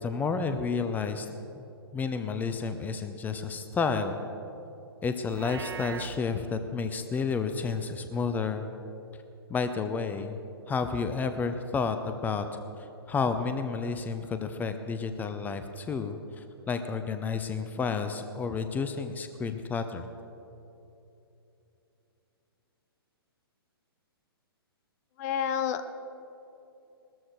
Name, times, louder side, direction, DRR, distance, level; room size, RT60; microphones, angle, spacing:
voice 1, 0.0-1.3 1.9-4.2 5.0-8.7 9.5-10.4 10.7-12.4 13.1-20.1, left 5 dB, 15° left, 8 dB, 0.7 m, -31 dB
Livestock farm animals working animals, 5.3-6.2, right 7 dB, 70° right, 0.8 m, -40 dB
voice 2, 25.2-26.0, left 8 dB, 40° left, 11 dB, 1.0 m, -30 dB
20.0 x 13.5 x 4.8 m, 2.9 s
figure-of-eight pair, 120°, 13 cm